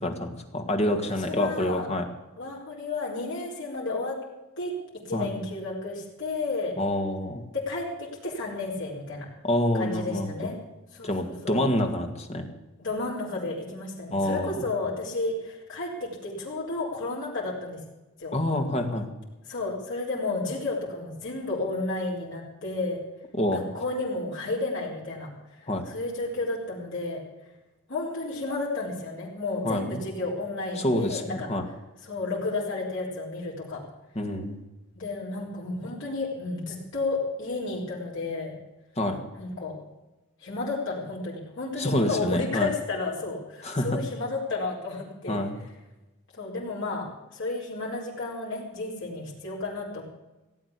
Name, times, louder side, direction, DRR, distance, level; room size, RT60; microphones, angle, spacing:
voice 1, 0.0-2.1 5.1-5.3 6.8-7.4 9.4-10.3 11.0-12.5 14.1-14.6 18.3-19.1 23.3-23.6 25.7-25.9 29.6-30.0 30.8-31.7 34.2-34.6 39.0-39.2 41.8-42.7 43.6-44.0 45.3-45.6, left 1 dB, 30° left, 5 dB, 2.0 m, -27 dB
voice 2, 1.3-1.9 2.4-4.2 4.6-4.7 5.0-6.7 7.5-9.3 9.7-10.6 10.9-11.6 12.8-17.8 18.2-18.3 19.5-23.0 23.5-27.2 27.9-31.5 32.0-33.8 34.9-38.5 39.4-39.7 40.4-45.4 46.3-47.1 47.3-50.0, left 3 dB, 60° left, -5 dB, 4.6 m, -32 dB
17.0 x 8.7 x 8.4 m, 1.1 s
head